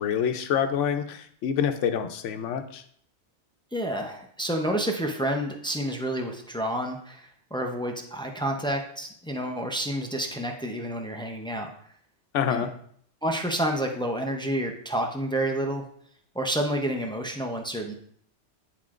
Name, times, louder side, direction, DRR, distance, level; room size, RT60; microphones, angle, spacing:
voice 1, 0.0-2.8 12.3-12.7, left 8 dB, 85° left, 8 dB, 0.9 m, -27 dB
voice 2, 3.7-11.7 12.5-12.6 13.2-15.8 16.3-17.9, right 1 dB, 5° left, 2 dB, 0.3 m, -29 dB
9.6 x 4.3 x 2.4 m, 0.63 s
omnidirectional pair, 1.2 m